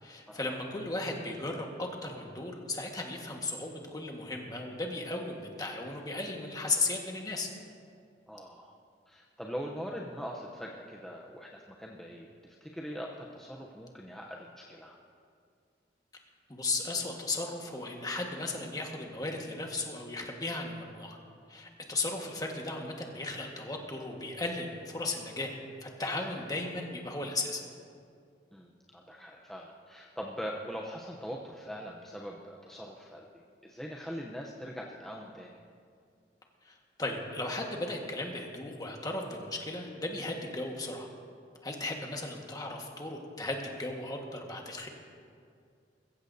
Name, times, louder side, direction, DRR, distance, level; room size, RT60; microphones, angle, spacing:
voice 1, 0.0-7.5 16.5-21.2 21.5-25.5 25.8-27.6 36.6-41.1 41.6-44.9, left 2 dB, 20° left, 1 dB, 1.5 m, -36 dB
voice 2, 8.3-8.8 9.1-15.0 28.5-33.2 33.6-35.6, equal, ahead, -2 dB, 0.7 m, -42 dB
22.0 x 15.0 x 2.7 m, 2.3 s
head